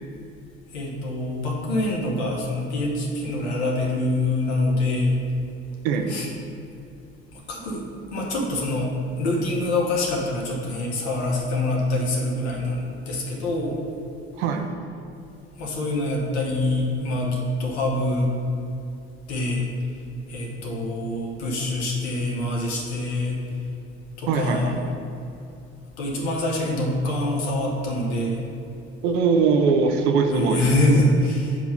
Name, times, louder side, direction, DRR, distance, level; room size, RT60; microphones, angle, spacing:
voice 1, 0.7-5.2 6.1-6.3 7.3-7.8 8.1-8.9 9.2-13.7 15.6-18.3 19.3-19.7 20.3-23.4 24.2-24.7 26.0-28.4 30.3-31.6, left 1 dB, 80° left, -1 dB, 1.3 m, -25 dB
voice 2, 5.8-6.2 14.4-14.7 24.3-24.8 29.0-30.7, right 5 dB, 70° right, 5 dB, 0.7 m, -21 dB
7.3 x 3.0 x 5.6 m, 2.6 s
hypercardioid pair, 65°, 33 cm